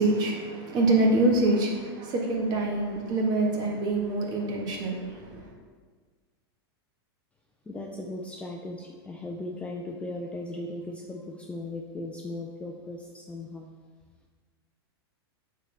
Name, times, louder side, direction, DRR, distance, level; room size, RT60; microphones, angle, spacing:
voice 1, 0.0-5.5, right 2 dB, 30° right, 0 dB, 1.3 m, -25 dB
voice 2, 7.7-13.7, left 2 dB, 10° left, 0 dB, 0.4 m, -37 dB
9.1 x 3.8 x 3.3 m, 1.5 s
supercardioid pair, 140°, 13 cm